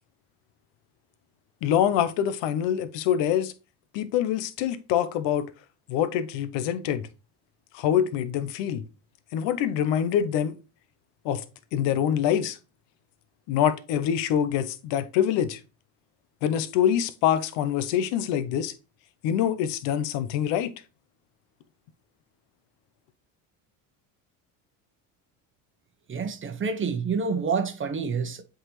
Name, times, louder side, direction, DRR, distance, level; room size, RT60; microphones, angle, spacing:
voice 1, 1.6-3.5 3.9-5.5 5.9-7.1 7.7-8.8 9.3-10.6 11.2-11.4 11.7-12.6 13.5-15.6 16.4-18.7 19.2-20.7, left 9 dB, 75° left, 0.9 m, -25 dB
voice 2, 26.1-28.4, right 5 dB, 25° right, 0.9 m, -28 dB
7.8 x 3.9 x 3.2 m
cardioid pair, 105°, 44 cm